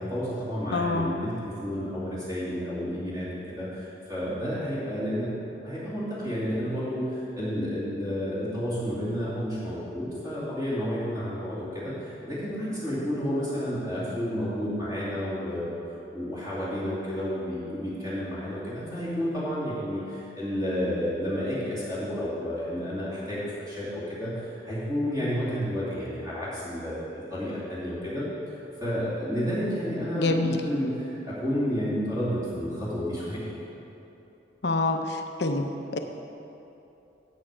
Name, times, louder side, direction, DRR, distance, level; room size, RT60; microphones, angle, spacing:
voice 1, 0.0-3.3 3.6-5.3 5.6-15.8 16.1-33.5, equal, 20° right, -11 dB, 2.6 m, -31 dB
voice 2, 0.7-1.1 30.1-30.6 34.6-35.0 35.4-36.0, left 2 dB, 70° left, 5 dB, 0.7 m, -26 dB
8.7 x 8.1 x 6.1 m, 2.9 s
head